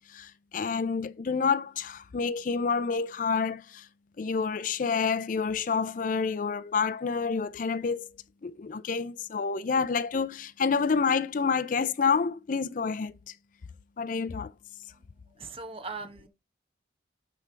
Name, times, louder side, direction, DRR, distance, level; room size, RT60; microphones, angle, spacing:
voice 1, 0.1-3.9 4.2-8.1 8.4-13.3 14.0-14.5, left 5 dB, 45° left, 0.4 m, -28 dB
voice 2, 15.4-16.3, right 4 dB, 30° right, 1.0 m, -39 dB
9.8 x 3.4 x 4.4 m
head